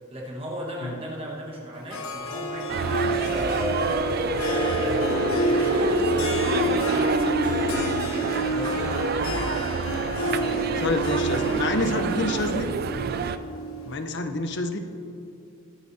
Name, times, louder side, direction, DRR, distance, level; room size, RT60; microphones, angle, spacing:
voice 1, 0.1-3.7 4.2-8.1 8.5-10.8 11.4-12.2, right 1 dB, 25° right, -3 dB, 1.4 m, -37 dB
Harp, 1.9-14.1, right 1 dB, 75° left, 1.0 m, -29 dB
sound 1, 2.7-13.4, right 5 dB, 45° right, 0.3 m, -29 dB
sound 2, 3.0-8.0, equal, 80° right, 2.5 m, -28 dB
voice 2, 10.8-12.7 13.8-14.8, left 2 dB, 50° left, 7 dB, 0.7 m, -27 dB
21.5 x 8.2 x 2.8 m, 2.7 s
head